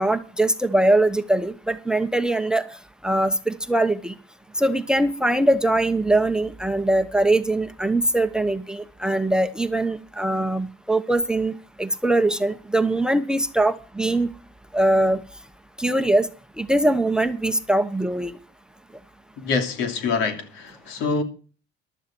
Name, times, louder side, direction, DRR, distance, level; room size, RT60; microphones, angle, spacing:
voice 1, 0.0-2.6 3.0-4.1 4.6-14.3 14.7-15.2 15.8-16.3 16.6-18.4, right 1 dB, 5° right, 0.9 m, -22 dB
voice 2, 19.4-21.2, left 4 dB, 80° left, 2.9 m, -25 dB
14.5 x 12.0 x 4.6 m
cardioid pair, 120°, 20 cm